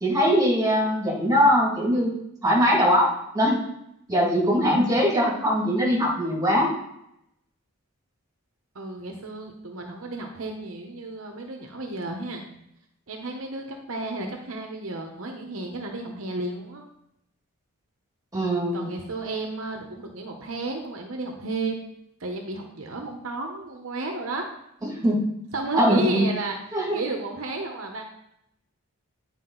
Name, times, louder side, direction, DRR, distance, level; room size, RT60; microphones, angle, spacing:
voice 1, 0.0-2.1 2.4-3.6 4.1-6.7 18.3-18.9 24.8-25.2 25.8-26.3 26.7-27.0, equal, 15° right, -4 dB, 2.1 m, -21 dB
voice 2, 8.7-12.4 13.1-16.8 18.7-21.9 22.2-24.5 25.5-26.6 26.9-28.0, right 2 dB, 65° right, 3 dB, 0.9 m, -32 dB
9.7 x 5.1 x 3.9 m, 0.78 s
head